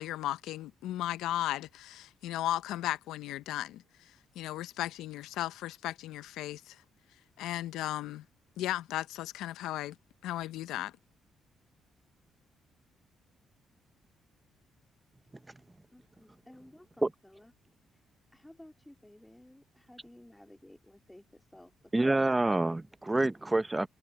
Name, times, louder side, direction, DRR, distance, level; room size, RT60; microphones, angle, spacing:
voice 1, 0.0-3.8 4.4-6.8 7.4-8.2 8.6-10.0 10.2-10.9, left 14 dB, 90° left, 0.6 m, -35 dB
voice 2, 15.9-17.5 18.3-21.7 22.0-22.3, left 1 dB, 5° left, 2.0 m, -55 dB
voice 3, 21.9-23.9, right 2 dB, 15° right, 0.8 m, -27 dB
cardioid pair, 90°, 0 cm